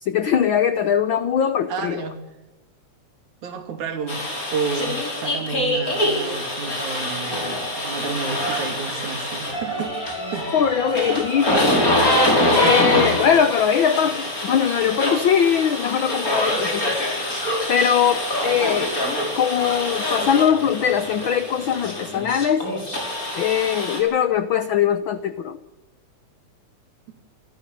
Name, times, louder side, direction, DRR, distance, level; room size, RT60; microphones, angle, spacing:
voice 1, 0.0-2.0 10.5-11.7 12.5-18.9 19.3-22.7 23.3-25.6, left 8 dB, 80° left, 12 dB, 1.1 m, -21 dB
voice 2, 1.7-2.2 3.4-4.2 4.5-9.9 10.3-10.5 11.0-11.3 12.6-13.3 27.1-27.2, right 5 dB, 80° right, 5 dB, 4.0 m, -31 dB
sound 1, 4.1-24.0, left 1 dB, 25° left, 5.6 m, -24 dB
27.5 x 14.5 x 6.6 m, 1.1 s
omnidirectional pair, 3.4 m